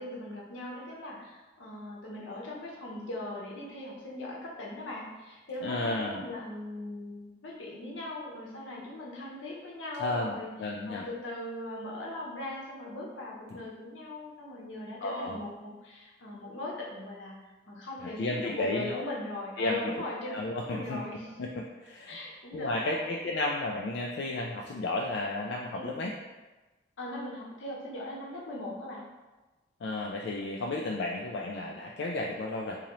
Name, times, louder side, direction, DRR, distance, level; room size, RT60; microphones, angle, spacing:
voice 1, 0.0-20.3 20.7-21.3 22.1-23.1 25.7-26.0 27.0-29.0, left 1 dB, 90° left, -3 dB, 0.9 m, -40 dB
voice 2, 5.6-6.2 10.0-11.0 15.0-15.4 18.0-19.1 19.6-19.8 20.3-21.0 21.8-22.2 22.5-26.1 29.8-32.8, left 2 dB, 70° left, -1 dB, 0.3 m, -33 dB
3.8 x 2.9 x 3.0 m, 1.2 s
head